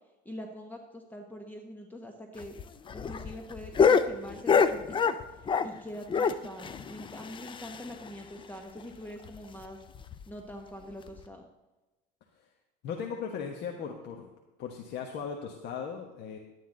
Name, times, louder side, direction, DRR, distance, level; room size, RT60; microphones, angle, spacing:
voice 1, 0.2-2.6 2.9-5.2 5.6-9.8 10.3-11.5, equal, 10° left, 3 dB, 1.2 m, -44 dB
sound 1, 2.4-5.8 6.1-8.1 8.4-8.5 8.8-8.9 9.3-9.4 9.9-10.2 11.1-11.2, left 6 dB, 25° left, 0.5 m, -26 dB
voice 2, 12.8-14.3 14.6-16.4, left 6 dB, 55° left, 2 dB, 1.3 m, -37 dB
11.5 x 9.5 x 3.9 m, 1.1 s
cardioid pair, 125°, 21 cm